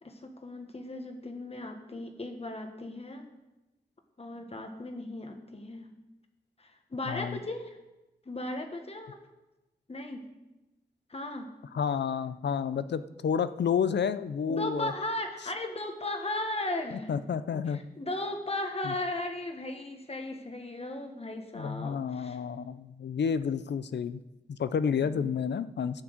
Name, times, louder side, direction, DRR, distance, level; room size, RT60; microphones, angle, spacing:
voice 1, 0.0-3.3 4.2-5.9 6.6-7.8 8.2-9.2 9.9-10.3 11.1-11.5 14.5-17.1 17.5-22.4, left 1 dB, 35° left, 5 dB, 1.4 m, -36 dB
voice 2, 7.1-7.4 11.7-14.9 16.9-17.8 18.8-18.9 21.5-24.2 24.5-26.0, left 7 dB, 90° left, 14 dB, 0.5 m, -30 dB
11.0 x 6.1 x 7.9 m, 1.0 s
wide cardioid pair, 115°, 17 cm